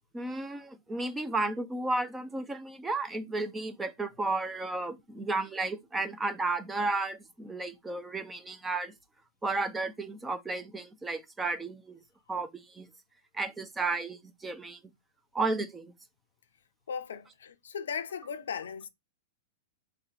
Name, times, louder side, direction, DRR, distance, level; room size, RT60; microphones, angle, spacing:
voice 1, 0.1-8.9 9.4-12.0 12.3-12.9 13.3-14.8 15.3-15.9, right 3 dB, 10° right, 0.5 m, -33 dB
voice 2, 16.9-18.9, left 6 dB, 85° left, 0.5 m, -37 dB
3.3 x 2.7 x 3.9 m
hypercardioid pair, 120°, 0 cm